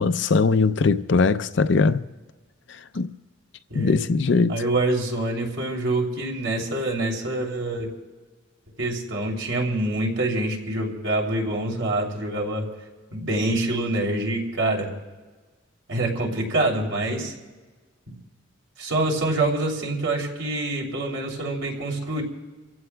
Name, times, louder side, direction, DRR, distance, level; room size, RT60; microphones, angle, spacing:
voice 1, 0.0-2.0 2.9-3.1 3.7-4.6, left 4 dB, 60° left, 0.5 m, -20 dB
voice 2, 4.5-7.9 8.8-12.7 13.1-14.9 15.9-17.3 18.1-18.2 18.8-22.2, right 2 dB, 70° right, 2.9 m, -26 dB
28.0 x 15.5 x 2.2 m
head